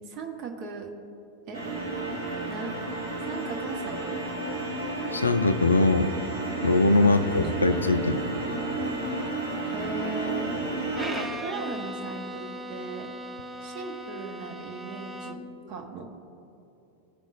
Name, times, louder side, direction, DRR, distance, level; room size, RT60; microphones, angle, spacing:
voice 1, 0.1-0.9 1.5-1.6 2.5-2.7 3.2-4.2 7.0-7.1 7.5-7.6 9.7-10.6 11.0-13.1 13.6-16.1, right 4 dB, 40° right, 3 dB, 0.8 m, -38 dB
sound 1, 1.5-11.3, right 2 dB, 65° right, 1.5 m, -32 dB
voice 2, 5.1-6.1 6.6-8.2, left 2 dB, 80° left, 12 dB, 0.4 m, -21 dB
Bowed string instrument, 10.9-15.6, equal, 5° right, 0.5 m, -38 dB
14.5 x 5.2 x 2.5 m, 2.9 s
figure-of-eight pair, 90°, 0 cm